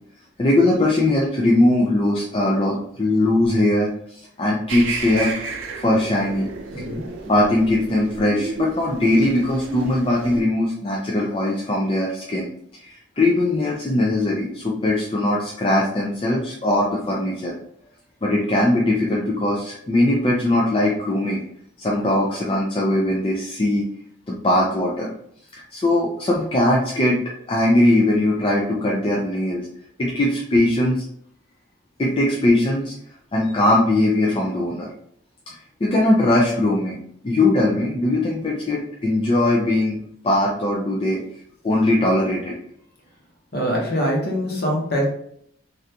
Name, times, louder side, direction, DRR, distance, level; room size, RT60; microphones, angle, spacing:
voice 1, 0.4-5.4 5.7-6.5 7.3-12.5 12.8-17.5 18.2-21.4 21.8-23.9 24.3-25.1 25.7-27.2 27.5-29.7 30.0-31.0 32.0-32.9 33.3-34.9 35.5-37.0 37.2-40.0 40.2-41.2 41.6-42.6, left 1 dB, 30° left, -3 dB, 0.4 m, -20 dB
sound 1, 4.7-10.4, right 3 dB, 85° right, 0.5 m, -31 dB
voice 2, 6.7-7.1 43.5-45.0, equal, 55° left, -2 dB, 1.0 m, -23 dB
3.3 x 2.5 x 2.8 m, 0.68 s
head